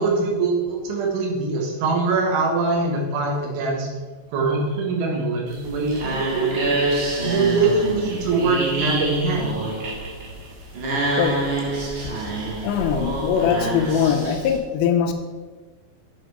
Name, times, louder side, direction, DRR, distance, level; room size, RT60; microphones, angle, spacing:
voice 1, 0.0-3.9 4.3-6.7 7.2-9.6, right 3 dB, 90° right, 0 dB, 4.1 m, -23 dB
sound 1, 5.5-14.6, right 2 dB, 50° right, 2.5 m, -26 dB
voice 2, 12.6-15.1, left 8 dB, 80° left, 5 dB, 2.9 m, -21 dB
8.0 x 7.5 x 4.9 m, 1.3 s
omnidirectional pair, 5.3 m